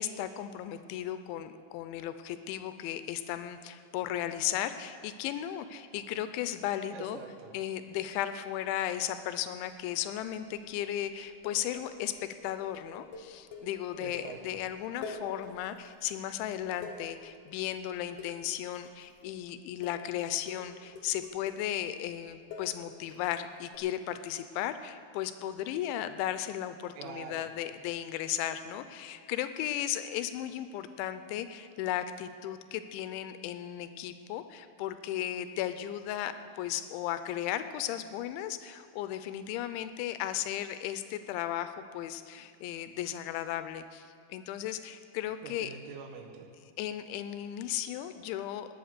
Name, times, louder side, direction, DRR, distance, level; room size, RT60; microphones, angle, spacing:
voice 1, 0.0-7.2 7.5-45.7 46.8-48.7, left 11 dB, 85° left, 11 dB, 2.9 m, -35 dB
voice 2, 6.9-7.5 14.0-14.6 27.0-27.5 45.4-46.5, right 6 dB, 85° right, 5 dB, 3.8 m, -45 dB
sound 1, 9.7-10.3 10.5-10.9 11.2-14.7 15.0-15.9 16.2-19.4 19.8-20.1 20.5-23.3 23.7-23.8, left 4 dB, 60° left, 2.3 m, -46 dB
19.0 x 8.6 x 6.7 m, 2.3 s
omnidirectional pair, 5.5 m